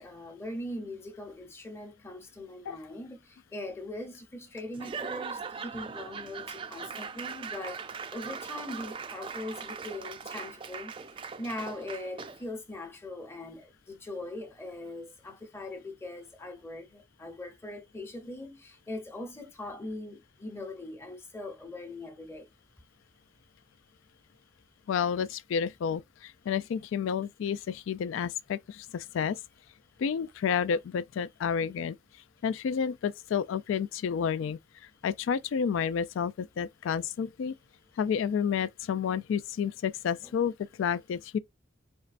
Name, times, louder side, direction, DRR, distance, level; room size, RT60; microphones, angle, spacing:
voice 1, 0.0-10.9 11.4-22.5, left 1 dB, 15° left, 0.8 m, -41 dB
Laughter / Applause / Crowd, 4.7-12.5, right 5 dB, 25° right, 0.3 m, -40 dB
voice 2, 24.9-29.4 30.0-32.0 32.4-34.6 35.0-37.5 38.0-41.4, left 7 dB, 85° left, 0.3 m, -30 dB
4.5 x 3.1 x 2.5 m
head